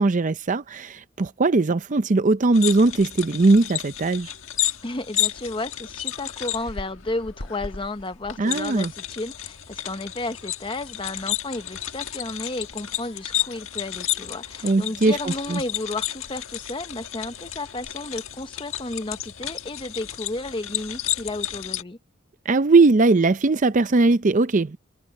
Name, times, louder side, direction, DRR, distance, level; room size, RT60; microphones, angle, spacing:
voice 1, 0.0-4.3 8.4-8.9 14.6-15.6 22.5-24.8, right 3 dB, 40° right, 0.5 m, -19 dB
sound 1, 2.5-21.8, left 12 dB, 75° left, 1.7 m, -32 dB
voice 2, 4.8-22.0, left 2 dB, 25° left, 1.0 m, -33 dB
head